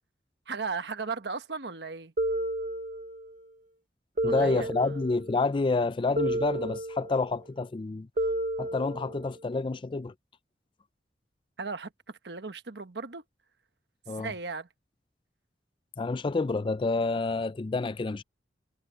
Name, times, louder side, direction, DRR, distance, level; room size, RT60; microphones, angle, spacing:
voice 1, 0.5-2.1 4.3-5.0 11.6-13.2 14.1-14.7, right 4 dB, 70° right, 1.2 m, -36 dB
sound 1, 2.2-3.3 4.2-5.3 6.2-7.3 8.2-9.3, right 1 dB, 50° right, 0.9 m, -31 dB
voice 2, 4.2-8.1 8.6-10.1 14.1-14.3 16.0-18.2, left 3 dB, 30° left, 0.4 m, -28 dB
head